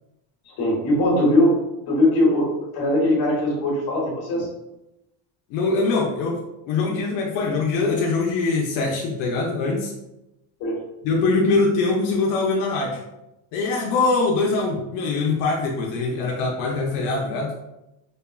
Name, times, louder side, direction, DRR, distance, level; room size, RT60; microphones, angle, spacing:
voice 1, 0.5-1.5 1.9-4.5 10.6-10.8, left 1 dB, 50° left, -3 dB, 1.3 m, -20 dB
voice 2, 5.5-9.9 11.0-13.0 13.5-17.5, left 3 dB, 85° left, -1 dB, 0.8 m, -23 dB
5.2 x 2.2 x 2.3 m, 0.93 s
cardioid pair, 150°, 49 cm